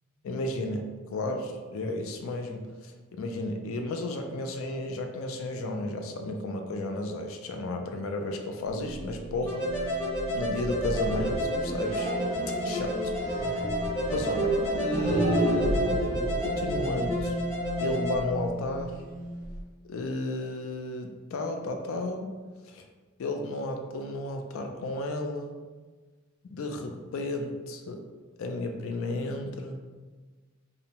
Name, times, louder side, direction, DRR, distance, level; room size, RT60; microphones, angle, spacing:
voice 1, 0.2-10.1 10.3-12.1 12.6-13.1 14.1-15.8 16.4-17.4 17.8-19.0 19.8-22.3 22.6-22.8 23.2-25.6 26.5-28.0 28.4-29.8, left 2 dB, 65° left, 4 dB, 0.3 m, -33 dB
sound 1, 8.6-19.6, right 1 dB, 35° right, 0.3 m, -32 dB
sound 2, 9.5-18.2, equal, 15° left, 0.7 m, -31 dB
2.6 x 2.0 x 2.8 m, 1.3 s
head